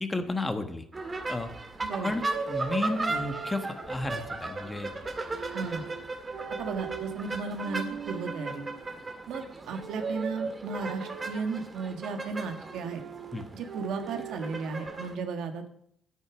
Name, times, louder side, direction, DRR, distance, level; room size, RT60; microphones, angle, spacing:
voice 1, 0.0-0.8 1.3-1.5 2.0-4.9 13.3-13.4, left 2 dB, 20° left, 7 dB, 1.4 m, -32 dB
sound 1, 0.9-15.1, right 3 dB, 30° right, 1.8 m, -37 dB
voice 2, 1.8-2.2 5.5-5.9 6.6-8.6 9.3-13.0 13.5-15.7, right 4 dB, 80° right, 6 dB, 1.5 m, -35 dB
sound 2, 2.1-4.0 5.3-6.0 6.3-7.2 7.6-8.8 9.8-11.6 12.7-14.4, right 5 dB, 65° right, 1.4 m, -39 dB
9.7 x 9.5 x 6.1 m, 0.69 s
cardioid pair, 90°, 0 cm